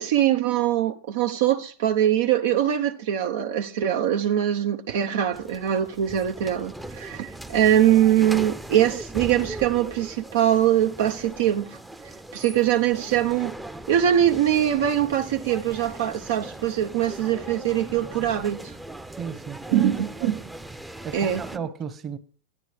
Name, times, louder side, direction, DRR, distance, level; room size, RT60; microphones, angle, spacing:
voice 1, 0.0-11.7 12.3-13.5 13.9-18.7 19.7-20.5 21.1-21.4, right 11 dB, 65° right, 0.8 m, -22 dB
sound 1, 5.3-21.6, right 1 dB, 5° right, 0.7 m, -39 dB
voice 2, 19.2-19.8 20.2-20.4 21.0-22.2, right 7 dB, 25° right, 1.2 m, -34 dB
10.0 x 9.3 x 4.9 m
hypercardioid pair, 110°, 0 cm